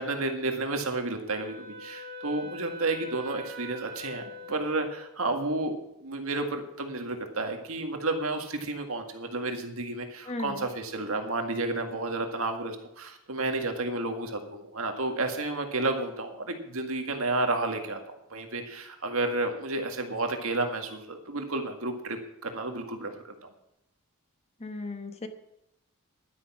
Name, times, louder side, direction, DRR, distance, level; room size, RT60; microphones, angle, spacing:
voice 1, 0.0-5.7 6.0-23.5, right 2 dB, 70° right, 5 dB, 1.9 m, -31 dB
Wind instrument woodwind instrument, 1.3-5.6, left 2 dB, 45° right, 1.7 m, -43 dB
voice 2, 10.3-10.6 24.6-25.3, left 2 dB, 30° left, 8 dB, 1.1 m, -36 dB
11.5 x 10.5 x 6.0 m, 0.84 s
head